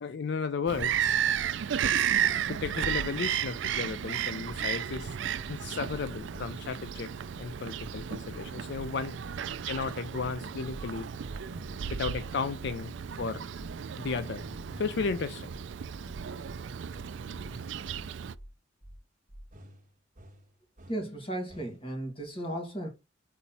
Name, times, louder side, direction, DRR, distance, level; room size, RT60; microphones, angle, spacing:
voice 1, 0.0-1.2 2.5-5.2 5.5-7.1 7.4-9.1 9.7-11.1 11.9-13.4 14.0-14.5 14.8-15.5, left 5 dB, 60° left, 0.4 m, -34 dB
Bird vocalization bird call bird song, 0.7-18.3, right 8 dB, 65° right, 0.4 m, -33 dB
sound 1, 5.4-6.8 9.5-12.2 14.2-15.1 16.8-18.1 19.5-21.2 21.5-21.9, equal, 40° right, 1.2 m, -52 dB
sound 2, 7.3-7.4 7.8-7.9 8.2-8.4 8.7-8.9 9.2-9.4 9.7-9.8 10.2-10.3 10.6-10.8 11.1-11.3 11.6-11.8 12.1-12.2 12.6-12.7 13.0-13.2 13.5-13.7 14.0-14.2 14.5-14.6 15.0-15.1 15.4-15.6 15.9-16.1 16.4-16.6 16.9-17.0 17.4-17.5 17.8-18.0 18.3-18.5 18.8-19.0 19.3-19.4, equal, 10° left, 1.0 m, -48 dB
voice 2, 20.9-22.9, right 1 dB, 30° left, 2.3 m, -35 dB
5.6 x 4.1 x 4.2 m
head